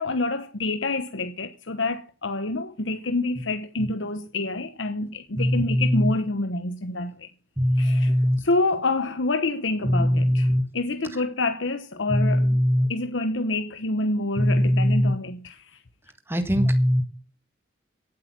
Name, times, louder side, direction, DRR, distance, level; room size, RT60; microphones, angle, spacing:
voice 1, 0.0-7.3 7.8-8.1 8.4-12.5 12.9-15.6, left 2 dB, 90° left, 1.0 m, -27 dB
voice 2, 5.3-6.1 7.6-8.4 9.8-10.7 12.1-12.9 14.4-15.2 16.3-17.0, equal, 10° right, 1.6 m, -21 dB
17.5 x 8.6 x 6.0 m
head